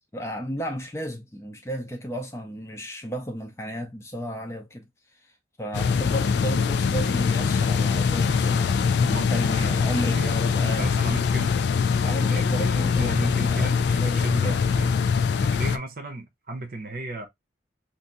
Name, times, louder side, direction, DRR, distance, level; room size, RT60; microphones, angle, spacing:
voice 1, 0.1-4.9 5.6-10.9 12.0-14.6, equal, 15° left, 0.5 m, -34 dB
sound 1, 5.7-15.8, left 5 dB, 70° left, 0.3 m, -23 dB
voice 2, 9.1-9.7 10.1-11.6 12.0-14.9 15.4-17.3, right 2 dB, 50° right, 0.8 m, -35 dB
2.7 x 2.6 x 3.6 m
head